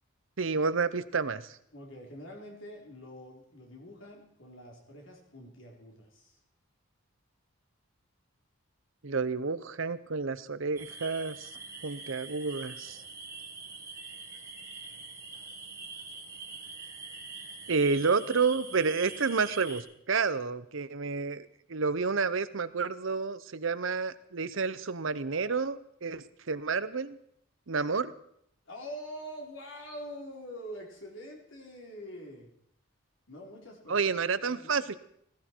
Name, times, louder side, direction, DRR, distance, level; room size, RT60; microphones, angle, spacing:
voice 1, 0.4-1.6 9.0-11.5 11.8-13.0 17.7-27.2 27.7-28.1 33.9-35.0, right 4 dB, 65° right, 15 dB, 0.8 m, -30 dB
voice 2, 1.7-6.4 28.7-32.5 33.3-34.1 34.5-34.7, equal, 60° left, 0 dB, 3.8 m, -45 dB
sound 1, 10.8-19.8, right 4 dB, 15° right, 1.7 m, -44 dB
16.5 x 15.5 x 4.6 m, 0.71 s
head